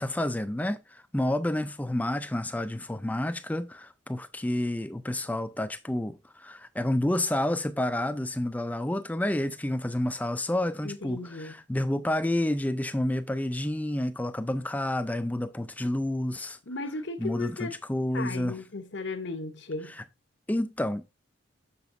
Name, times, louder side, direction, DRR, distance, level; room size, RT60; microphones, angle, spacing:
voice 1, 0.0-16.6 17.2-18.6 19.9-20.0 20.5-21.1, left 1 dB, 10° left, 0.4 m, -29 dB
voice 2, 10.8-11.6 16.7-17.8 18.1-19.9, left 3 dB, 60° left, 0.9 m, -36 dB
6.9 x 6.8 x 2.6 m
head